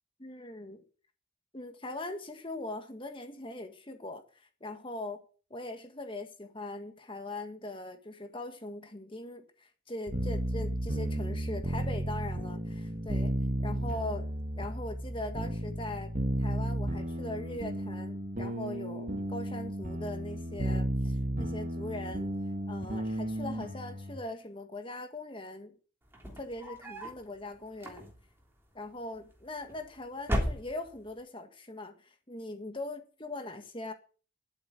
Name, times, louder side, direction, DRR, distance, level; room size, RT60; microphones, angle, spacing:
voice 1, 0.2-0.8 1.5-5.2 5.5-14.3 14.6-22.3 22.7-25.7 26.4-28.1 28.7-33.9, left 2 dB, 25° left, 7 dB, 1.9 m, -41 dB
sound 1, 10.1-24.2, right 1 dB, 40° right, 1.6 m, -33 dB
sound 2, 26.1-27.2 27.7-28.4 29.4-29.9 30.2-31.1, equal, 10° right, 3.1 m, -35 dB
11.5 x 8.6 x 8.3 m, 0.39 s
head